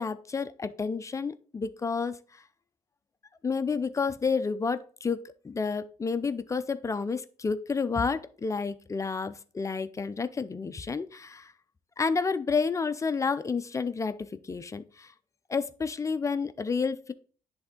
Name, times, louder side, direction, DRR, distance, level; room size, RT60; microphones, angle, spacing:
voice 1, 0.0-2.4 3.4-11.5 12.0-15.1 15.5-17.1, left 5 dB, 20° left, 0.4 m, -30 dB
10.5 x 3.5 x 3.7 m
cardioid pair, 130°, 17 cm